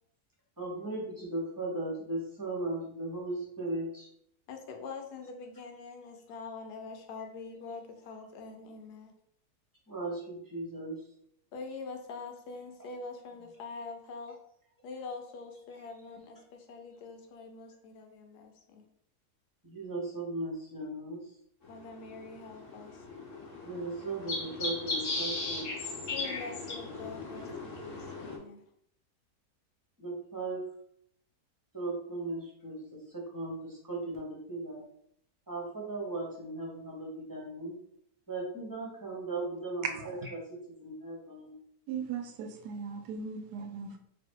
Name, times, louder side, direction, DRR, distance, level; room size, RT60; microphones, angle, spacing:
voice 1, 0.6-4.1 9.9-11.0 19.6-21.2 23.6-25.6 30.0-30.6 31.7-34.8 35.5-37.7 38.3-40.4 40.8-41.5, right 2 dB, 15° right, 0.9 m, -37 dB
voice 2, 4.5-9.1 11.5-14.4 14.8-18.8 21.7-23.1 26.1-28.6, left 4 dB, 90° left, 1.3 m, -44 dB
sound 1, 21.6-28.4, left 2 dB, 55° left, 1.2 m, -37 dB
voice 3, 39.8-40.3 41.9-44.0, right 6 dB, 90° right, 1.2 m, -38 dB
3.1 x 2.7 x 4.5 m
omnidirectional pair, 1.7 m